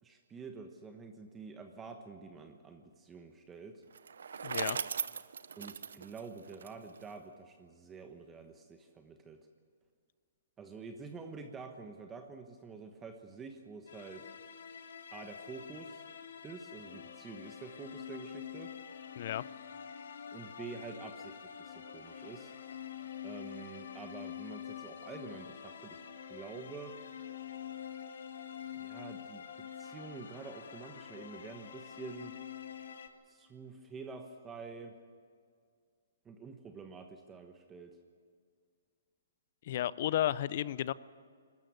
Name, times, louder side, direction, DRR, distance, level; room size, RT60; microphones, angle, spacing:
voice 1, 0.0-3.8 5.6-9.4 10.6-14.3 15.1-16.1 16.4-18.7 20.3-22.5 23.2-26.0 26.3-27.0 28.7-29.4 29.8-32.3 33.3-34.9 36.2-38.0, right 4 dB, 15° right, 5 dB, 1.2 m, -48 dB
Bicycle, 3.9-7.1, right 6 dB, 80° right, 0.6 m, -39 dB
voice 2, 4.4-4.8 19.2-19.4 39.6-40.9, left 12 dB, 50° left, 19 dB, 0.5 m, -32 dB
sound 1, 13.9-33.1, left 8 dB, 70° left, 1.9 m, -46 dB
22.0 x 13.5 x 9.4 m, 2.1 s
hypercardioid pair, 150°, 0 cm